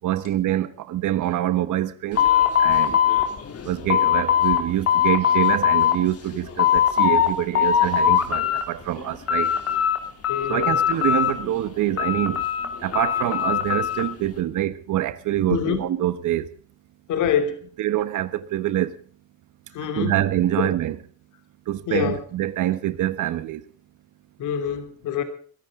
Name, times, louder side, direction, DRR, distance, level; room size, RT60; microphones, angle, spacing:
voice 1, 0.0-2.3 2.6-3.0 3.6-9.5 10.5-12.5 12.8-16.5 17.8-19.0 19.8-21.0 21.7-23.6, right 13 dB, 80° right, 1.3 m, -25 dB
sound 1, 2.1-4.6 4.9-5.9 6.3-7.3 7.5-8.6 9.0-10.0 10.2-11.5 12.0-14.0, left 10 dB, 50° left, 3.3 m, -20 dB
voice 2, 10.3-10.7 15.5-15.8 17.1-17.7 19.7-20.2 20.6-20.7 21.9-22.2 24.4-25.2, left 8 dB, 80° left, 3.1 m, -25 dB
22.5 x 14.5 x 3.8 m
cardioid pair, 90°, 30 cm